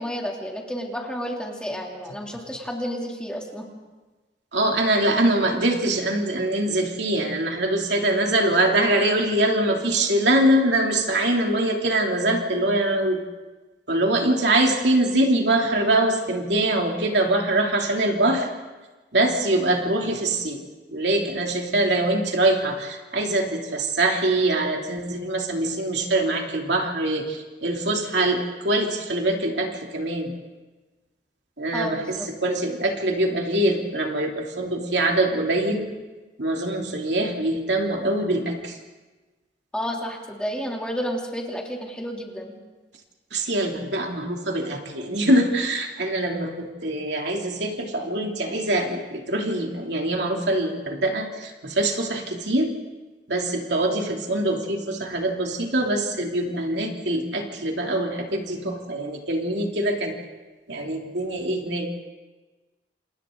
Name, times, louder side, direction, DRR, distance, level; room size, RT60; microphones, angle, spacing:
voice 1, 0.0-3.7 31.7-32.3 39.7-42.6, equal, 5° left, -1 dB, 2.9 m, -31 dB
voice 2, 4.5-13.2 13.9-18.5 19.1-20.6 20.9-30.3 31.6-32.2 32.4-35.9 36.4-38.8 43.3-52.7 53.3-60.1 60.7-61.9, right 1 dB, 70° right, 1 dB, 2.9 m, -23 dB
28.5 x 28.5 x 3.9 m, 1.2 s
head